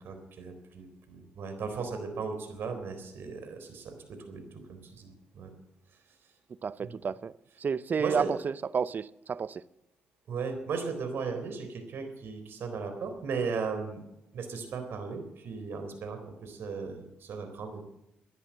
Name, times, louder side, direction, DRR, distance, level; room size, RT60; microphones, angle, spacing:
voice 1, 0.0-3.9 4.3-5.5 6.8-7.0 8.0-8.3 10.3-14.0 14.3-17.8, right 5 dB, 65° right, 4.0 m, -36 dB
voice 2, 6.6-7.3 7.6-9.6, right 6 dB, 50° right, 0.7 m, -31 dB
15.0 x 11.0 x 7.8 m
supercardioid pair, 55°, 4 cm